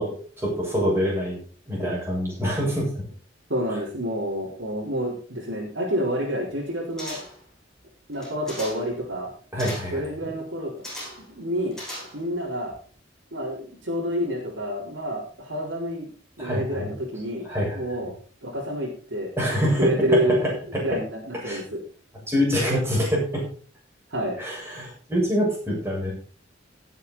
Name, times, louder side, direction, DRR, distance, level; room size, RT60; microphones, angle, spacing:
voice 1, 0.0-1.4 1.7-2.9 3.7-3.8 9.5-10.3 16.4-16.9 17.4-17.8 19.4-20.8 21.4-21.6 22.3-23.4 24.4-26.1, equal, 15° right, -4 dB, 7.7 m, -25 dB
voice 2, 3.5-7.2 8.1-9.3 9.9-10.7 11.4-11.8 12.1-12.7 13.3-16.1 16.4-17.5 17.7-18.1 18.4-19.3 19.6-20.4 20.8-21.8 24.1-24.3, equal, 75° right, -6 dB, 4.1 m, -28 dB
sound 1, 7.0-7.5 8.1-8.9 9.6-10.0 10.8-11.3 11.7-12.4 12.7-12.8, left 1 dB, 5° left, 7.9 m, -38 dB
18.5 x 8.1 x 4.1 m, 0.41 s
head